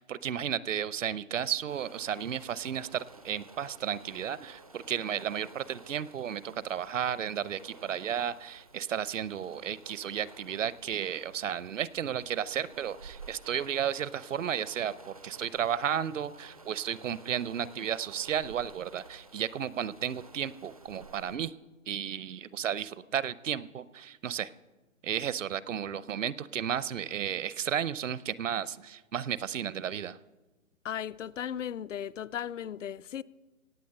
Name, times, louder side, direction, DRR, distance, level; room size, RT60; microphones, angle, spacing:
voice 1, 0.0-21.5 21.9-24.5 25.0-30.2, right 9 dB, 65° right, 0.7 m, -33 dB
sound 1, 1.7-21.4, right 3 dB, 30° right, 0.4 m, -53 dB
voice 2, 30.8-33.2, left 9 dB, 65° left, 0.5 m, -36 dB
18.0 x 7.9 x 6.6 m
hypercardioid pair, 155°, 41 cm